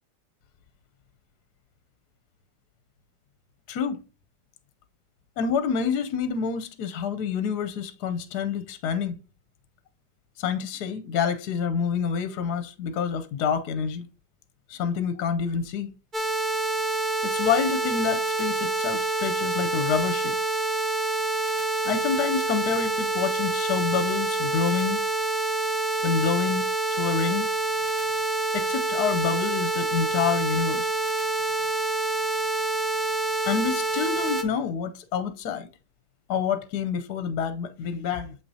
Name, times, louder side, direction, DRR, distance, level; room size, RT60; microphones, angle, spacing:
voice 1, 3.7-4.0 5.4-9.2 10.4-14.1 14.7-15.9 17.2-20.4 21.8-25.0 26.0-26.6 26.9-27.5 28.5-30.9 33.5-35.7 36.3-38.4, left 6 dB, 65° left, 1.1 m, -27 dB
sound 1, 16.1-34.4, right 2 dB, 30° right, 1.0 m, -27 dB
7.6 x 5.7 x 2.7 m
omnidirectional pair, 2.0 m